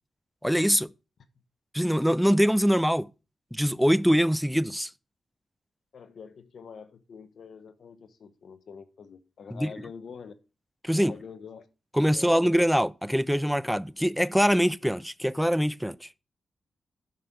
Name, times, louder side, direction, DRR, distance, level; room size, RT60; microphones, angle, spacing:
voice 1, 0.4-0.9 1.7-3.1 3.5-4.9 9.5-9.7 10.8-11.1 11.9-16.1, equal, ahead, 0.4 m, -23 dB
voice 2, 5.9-10.3 10.9-11.7 12.1-12.6, left 6 dB, 70° left, 0.8 m, -45 dB
7.7 x 5.8 x 5.1 m
cardioid pair, 60°, 0 cm